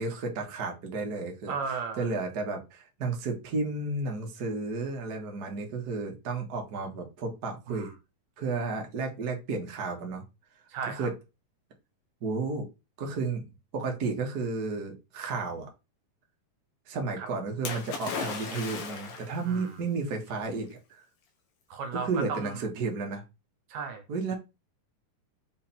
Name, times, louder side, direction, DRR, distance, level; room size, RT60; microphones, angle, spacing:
voice 1, 0.0-1.6 2.0-7.9 8.4-10.2 10.9-11.1 12.2-12.7 13.0-13.4 13.7-15.7 16.9-21.0 21.9-23.2 24.1-24.3, right 3 dB, 40° right, 1.7 m, -32 dB
voice 2, 1.5-2.1 7.7-7.9 10.7-11.1 17.2-17.3 19.5-19.8 21.7-22.6 23.7-24.0, right 5 dB, 75° right, 2.5 m, -35 dB
Splash splatter, 17.6-19.4 20.4-20.5, left 5 dB, 85° left, 3.1 m, -36 dB
6.9 x 3.8 x 4.5 m
omnidirectional pair, 3.9 m